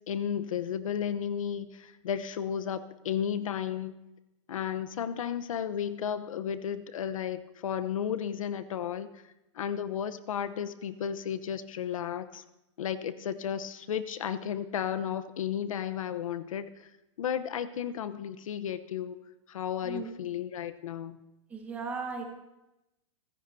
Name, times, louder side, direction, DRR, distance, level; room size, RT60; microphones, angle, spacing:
voice 1, 0.0-3.9 4.5-9.1 9.5-12.4 12.8-16.9 17.2-19.2 19.5-21.2, left 8 dB, 80° left, 11 dB, 1.0 m, -33 dB
voice 2, 21.5-22.2, right 4 dB, 10° right, 3 dB, 1.3 m, -36 dB
25.5 x 16.0 x 2.8 m, 0.91 s
supercardioid pair, 180°, 17 cm